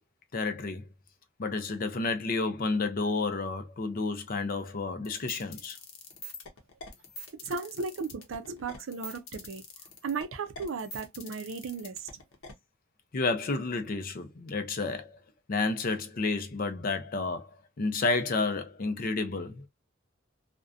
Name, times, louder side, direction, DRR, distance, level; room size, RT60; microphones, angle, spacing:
voice 1, 0.3-0.9 1.4-5.8 13.1-15.2 15.5-19.7, left 3 dB, 45° left, 0.5 m, -31 dB
sound 1, 5.0-12.5, left 2 dB, 85° left, 0.7 m, -44 dB
voice 2, 7.3-9.6 10.0-12.1, right 4 dB, 75° right, 0.4 m, -35 dB
2.5 x 2.1 x 2.3 m
head